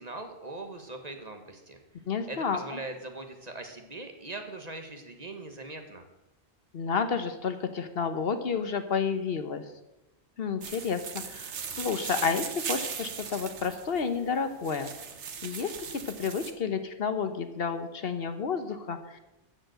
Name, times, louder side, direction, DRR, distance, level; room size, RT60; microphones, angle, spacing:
voice 1, 0.0-1.8 2.3-6.0, right 2 dB, 35° right, 5 dB, 1.3 m, -41 dB
voice 2, 2.1-2.8 6.7-9.6 10.4-14.9 15.4-19.2, left 5 dB, 60° left, 9 dB, 1.0 m, -31 dB
sound 1, 10.6-16.5, right 7 dB, 80° right, 1.3 m, -38 dB
13.5 x 5.2 x 7.7 m, 0.97 s
omnidirectional pair, 1.2 m